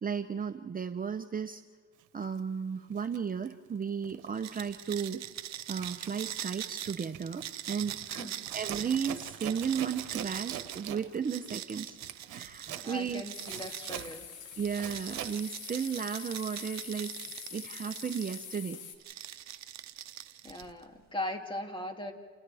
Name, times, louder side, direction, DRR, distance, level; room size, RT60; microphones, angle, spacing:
voice 1, 0.0-1.6 2.1-5.2 5.7-8.0 8.5-12.0 12.3-13.2 14.6-17.2 17.5-18.8, right 7 dB, 30° right, 7 dB, 0.8 m, -34 dB
Zipper (clothing), 2.2-2.4 2.9-4.3 4.6-4.9 5.2-15.4, right 11 dB, 85° right, 1.1 m, -44 dB
sound 1, 4.4-14.1 14.7-18.6 19.0-20.8, right 11 dB, 65° right, 0.9 m, -42 dB
voice 2, 8.1-8.4 12.8-14.2 20.4-22.1, left 1 dB, 15° left, 3 dB, 2.7 m, -39 dB
sound 2, 13.3-19.0, left 8 dB, 80° left, 2.2 m, -45 dB
29.5 x 28.5 x 3.5 m, 1.5 s
cardioid pair, 90°, 30 cm